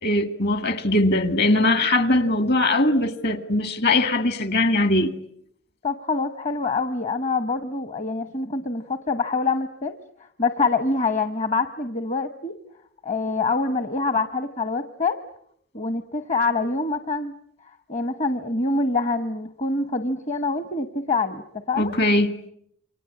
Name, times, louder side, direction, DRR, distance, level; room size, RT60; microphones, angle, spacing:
voice 1, 0.0-5.1 21.8-22.3, left 2 dB, 50° left, 2.0 m, -21 dB
voice 2, 5.8-10.0 10.4-12.5 13.0-15.2 15.7-17.3 17.9-21.9, left 3 dB, 35° left, 1.0 m, -25 dB
28.5 x 24.5 x 8.4 m
head